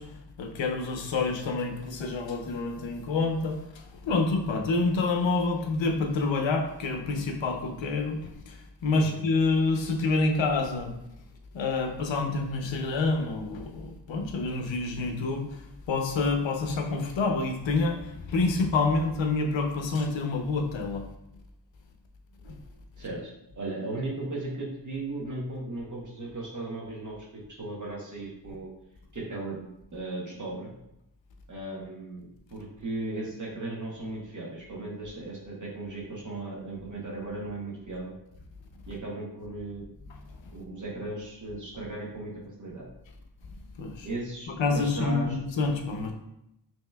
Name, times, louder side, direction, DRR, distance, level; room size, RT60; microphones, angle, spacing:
voice 1, 0.0-10.9 11.5-21.1 22.4-22.5 43.8-44.1 44.6-46.1, left 3 dB, 85° left, 4 dB, 0.7 m, -28 dB
voice 2, 23.0-28.7 29.1-29.6 29.9-30.7 31.5-38.1 38.9-39.8 40.5-42.9 44.0-45.4, right 2 dB, 40° right, -4 dB, 1.0 m, -36 dB
5.4 x 3.0 x 2.2 m, 0.84 s
wide cardioid pair, 85°, 44 cm